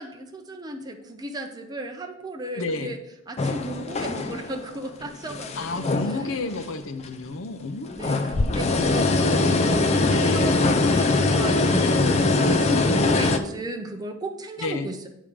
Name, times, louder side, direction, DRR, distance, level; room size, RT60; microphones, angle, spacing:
voice 1, 0.0-3.0 3.3-6.2 7.9-15.1, right 1 dB, 20° right, 3 dB, 0.6 m, -34 dB
voice 2, 2.5-2.9 5.6-8.2 10.1-10.6 14.6-14.9, left 2 dB, 85° left, 9 dB, 0.7 m, -31 dB
sound 1, 3.4-4.6 5.0-6.6 7.0-7.1 7.9-13.4, left 2 dB, 35° left, 0.4 m, -22 dB
8.6 x 3.7 x 4.9 m, 0.84 s
head